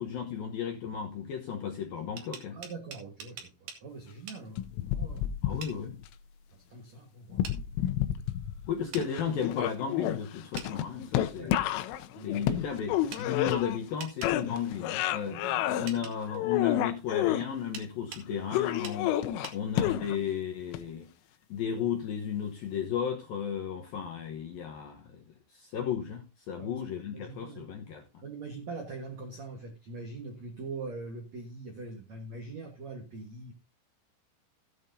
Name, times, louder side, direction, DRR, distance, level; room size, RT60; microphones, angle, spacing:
voice 1, 0.0-2.6 5.4-5.9 8.7-11.6 12.2-15.4 15.8-19.2 19.5-21.1 21.5-25.2 25.5-28.1, left 8 dB, 75° left, 2.2 m, -34 dB
sound 1, 2.0-3.8 4.3-4.4 5.6-5.8 7.4-7.6 8.9-9.1 10.6-10.7 13.1-13.3 14.0-14.4 15.9-16.2 17.7-18.3 18.8-19.0 19.4-19.6, right 6 dB, 55° right, 3.1 m, -43 dB
voice 2, 2.5-5.3 6.5-7.5 11.4-11.6 12.1-12.7 15.2-16.1 26.6-27.7 28.2-33.5, right 3 dB, 70° right, 1.6 m, -43 dB
sound 2, 4.6-6.1 7.3-8.7 9.0-13.9 14.2-15.9 16.3-17.4 18.5-20.3 20.7-20.8, left 12 dB, 90° left, 3.4 m, -30 dB
16.5 x 8.9 x 2.7 m
omnidirectional pair, 5.7 m